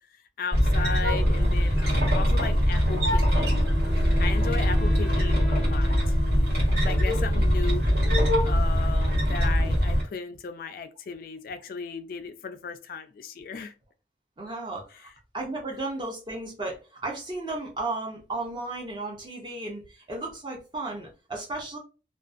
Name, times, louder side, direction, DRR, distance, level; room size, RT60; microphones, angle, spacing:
voice 1, 0.4-3.7 4.2-6.2 6.8-7.9 8.4-13.7 15.0-15.1, left 5 dB, 50° left, 0.3 m, -36 dB
sound 1, 0.5-10.0, equal, 65° right, 1.3 m, -22 dB
Wind instrument woodwind instrument, 2.9-8.0, left 3 dB, 45° right, 1.1 m, -40 dB
voice 2, 14.4-15.1 15.3-21.8, right 2 dB, 25° right, 0.5 m, -34 dB
2.5 x 2.3 x 2.4 m
head